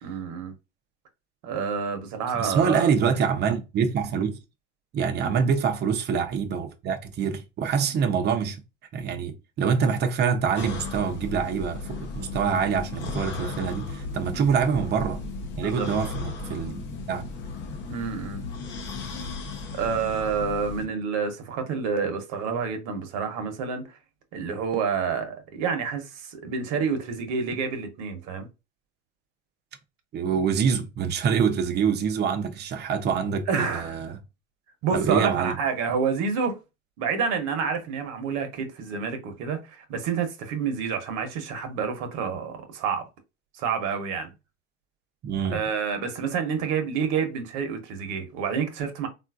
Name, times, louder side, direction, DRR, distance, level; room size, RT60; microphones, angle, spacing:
voice 1, 0.0-0.5 1.4-2.9 5.2-5.4 14.3-14.5 15.6-16.0 17.9-18.4 19.7-23.9 24.3-28.5 33.5-34.0 34.8-36.6 37.0-43.0 43.6-44.3 45.5-49.1, right 6 dB, 60° right, 1.0 m, -28 dB
voice 2, 2.3-4.4 4.9-8.6 8.9-15.2 15.6-17.3 30.1-34.2 34.9-35.6 45.2-45.7, right 6 dB, 30° right, 0.6 m, -25 dB
sound 1, 10.5-20.9, left 3 dB, 30° left, 0.6 m, -35 dB
3.6 x 2.5 x 2.3 m
supercardioid pair, 120°, 36 cm